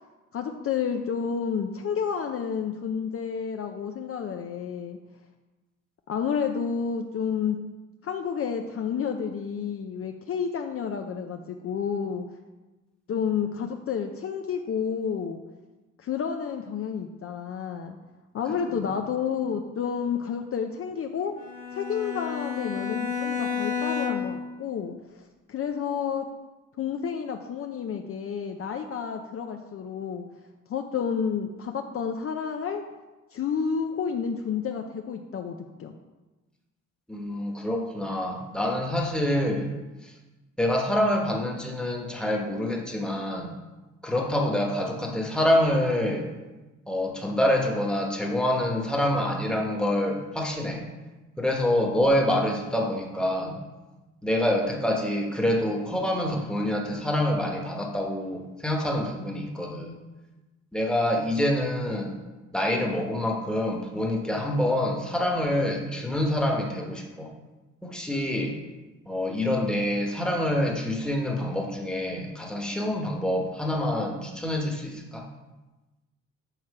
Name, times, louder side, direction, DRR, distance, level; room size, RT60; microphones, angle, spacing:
voice 1, 0.3-5.0 6.1-7.6 8.0-12.3 13.1-15.4 16.0-18.0 18.3-21.3 21.7-26.3 26.8-30.2 30.7-32.8 33.3-36.0, left 7 dB, 50° left, 5 dB, 0.6 m, -30 dB
Bowed string instrument, 21.4-24.5, left 6 dB, 75° left, 1.2 m, -30 dB
voice 2, 37.1-39.7 40.0-40.1 40.6-43.5 44.0-46.3 46.9-50.8 51.4-53.6 54.2-59.9 60.7-62.2 62.5-67.3 67.8-68.6 69.1-75.3, left 1 dB, 5° left, 0 dB, 1.2 m, -26 dB
6.5 x 4.3 x 4.8 m, 1.1 s
cardioid pair, 90°, 30 cm